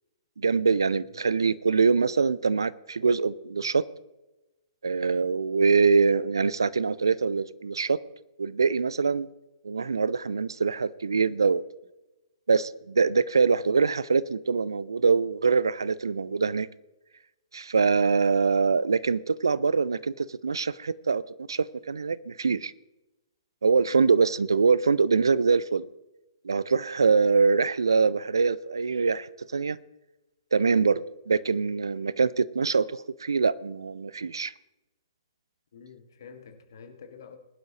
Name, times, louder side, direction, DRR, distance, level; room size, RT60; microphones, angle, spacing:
voice 1, 0.4-3.8 4.8-8.0 8.4-9.3 9.6-11.6 12.5-16.7 17.5-21.2 21.5-22.7 23.6-25.8 26.4-29.8 30.5-34.5, right 5 dB, 70° right, 0.5 m, -24 dB
voice 2, 1.1-1.5 35.7-37.4, left 6 dB, 55° left, 2.0 m, -48 dB
21.5 x 11.5 x 2.9 m
figure-of-eight pair, 115°, 2 cm